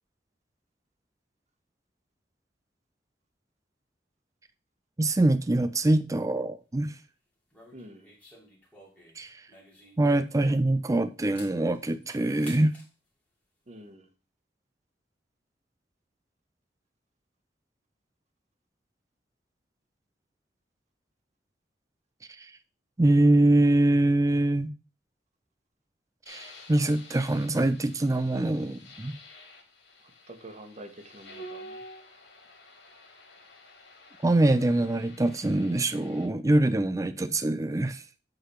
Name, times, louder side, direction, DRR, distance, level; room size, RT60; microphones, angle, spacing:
voice 1, 5.0-7.0 9.2-9.4 10.0-12.7 22.4-22.5 23.0-24.7 26.3-29.1 34.2-38.0, right 1 dB, 20° right, 0.4 m, -24 dB
sound 1, 7.5-10.8 11.2-12.9, left 1 dB, 10° left, 2.6 m, -52 dB
voice 2, 7.7-8.1 13.7-14.1 30.3-31.8, right 1 dB, 40° right, 1.4 m, -47 dB
sound 2, 26.3-36.3, left 1 dB, 85° left, 2.3 m, -49 dB
8.4 x 4.0 x 5.6 m
head